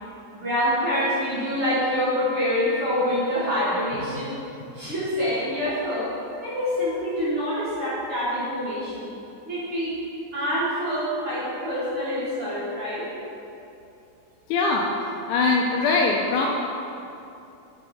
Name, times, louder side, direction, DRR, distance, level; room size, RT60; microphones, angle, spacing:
voice 1, 0.3-4.3 4.7-6.1 6.4-9.1 9.5-10.0 10.3-13.1, equal, 50° right, -10 dB, 1.8 m, -26 dB
voice 2, 14.5-14.9 15.3-16.5, left 3 dB, 80° left, 0 dB, 1.8 m, -22 dB
8.8 x 3.8 x 4.2 m, 2.7 s
omnidirectional pair, 3.8 m